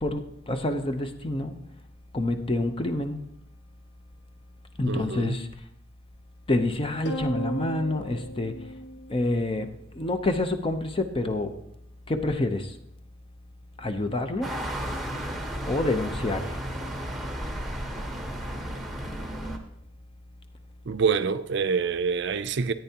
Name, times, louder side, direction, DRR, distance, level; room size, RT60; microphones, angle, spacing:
voice 1, 0.0-1.5 2.1-3.2 4.8-5.5 6.5-8.5 9.1-11.6 12.1-12.8 13.8-14.5 15.6-16.6, left 2 dB, 30° left, 0.7 m, -27 dB
voice 2, 4.9-5.4 20.9-22.7, right 5 dB, 65° right, 0.5 m, -26 dB
sound 1, 7.1-9.7, right 1 dB, 65° left, 1.1 m, -35 dB
sound 2, 14.4-19.6, right 1 dB, ahead, 1.1 m, -33 dB
14.0 x 9.1 x 2.9 m
head